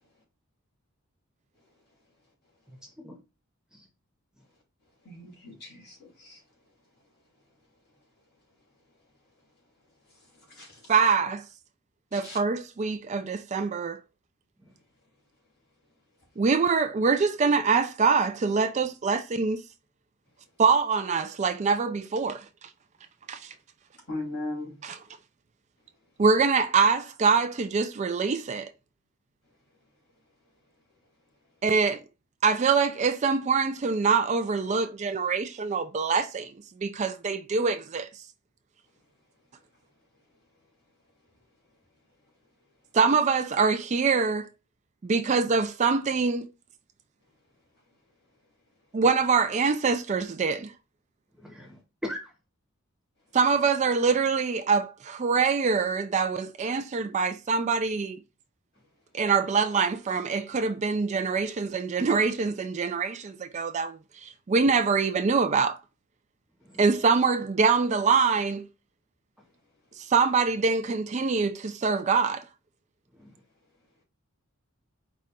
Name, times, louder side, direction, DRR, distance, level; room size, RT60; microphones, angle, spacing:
voice 1, 2.8-3.1 3.7-3.9 51.4-52.3 66.6-66.8 73.1-73.3, left 1 dB, 5° right, 0.8 m, -40 dB
voice 2, 5.0-6.4 10.6-10.8 12.1-12.4 24.1-24.7, left 2 dB, 50° left, 3.0 m, -38 dB
voice 3, 10.9-11.4 12.1-14.0 16.4-19.6 20.6-22.4 23.3-23.5 24.8-25.0 26.2-28.7 31.6-32.0 32.4-36.5 36.8-38.1 42.9-44.5 45.0-46.5 48.9-50.7 53.3-58.2 59.1-65.8 66.8-68.7 70.0-72.4, right 5 dB, 30° right, 0.3 m, -24 dB
5.0 x 2.4 x 4.2 m
head